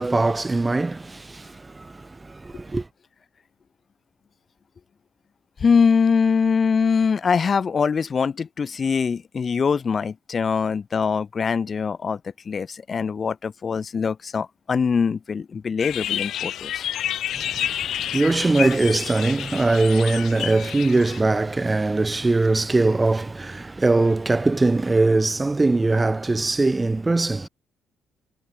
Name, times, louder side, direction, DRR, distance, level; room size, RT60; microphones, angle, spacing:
voice 1, 0.0-2.9 17.3-27.5, right 3 dB, 20° right, 0.7 m, -21 dB
voice 2, 5.6-12.2 12.5-16.8, left 6 dB, 40° left, 0.8 m, -23 dB
sound 1, 15.8-21.2, left 11 dB, 75° left, 0.9 m, -29 dB
cardioid pair, 90°, 0 cm